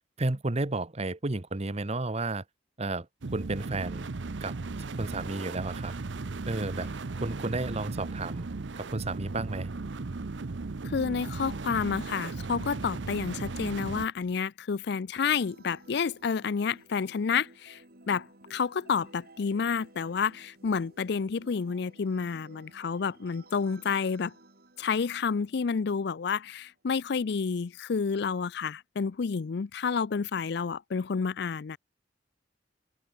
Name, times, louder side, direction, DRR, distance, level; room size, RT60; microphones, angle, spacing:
voice 1, 0.2-2.4 2.8-3.1 3.3-4.1 4.4-5.9 6.5-6.9 7.2-8.5 8.8-9.7, right 2 dB, 35° right, 1.1 m, -32 dB
sound 1, 3.2-14.1, right 3 dB, 75° right, 0.7 m, -36 dB
voice 2, 10.8-17.8 18.1-24.3 24.8-31.8, left 5 dB, 60° left, 0.5 m, -30 dB
sound 2, 15.2-26.7, right 2 dB, 55° right, 4.0 m, -56 dB
open air
head